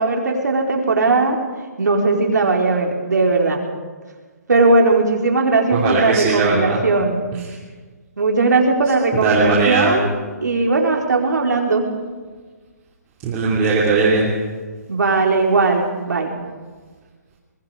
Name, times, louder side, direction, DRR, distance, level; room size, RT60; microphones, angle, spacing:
voice 1, 0.0-1.4 1.8-3.6 4.5-7.2 8.2-10.1 10.4-11.9 14.9-16.3, right 3 dB, 85° right, 2 dB, 4.2 m, -18 dB
voice 2, 5.7-6.8 9.2-10.0 13.2-14.3, right 3 dB, 20° right, -5 dB, 2.7 m, -18 dB
24.5 x 21.0 x 5.0 m, 1.4 s
hypercardioid pair, 160°, 9 cm